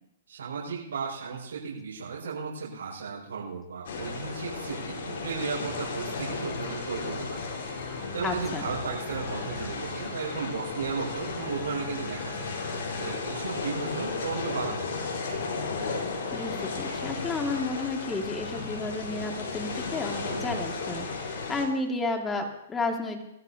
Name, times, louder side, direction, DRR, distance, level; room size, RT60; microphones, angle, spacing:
voice 1, 0.3-7.4 8.1-12.5 13.0-15.1 20.3-20.6, right 5 dB, 80° right, -6 dB, 5.8 m, -35 dB
sound 1, 3.8-21.6, left 4 dB, 65° left, 4.9 m, -34 dB
sound 2, 6.3-13.1, left 5 dB, 40° left, 3.4 m, -43 dB
voice 2, 8.2-8.7 16.3-23.2, left 3 dB, 15° left, 3 dB, 2.3 m, -32 dB
22.0 x 13.5 x 2.9 m, 0.83 s
hypercardioid pair, 130°, 0 cm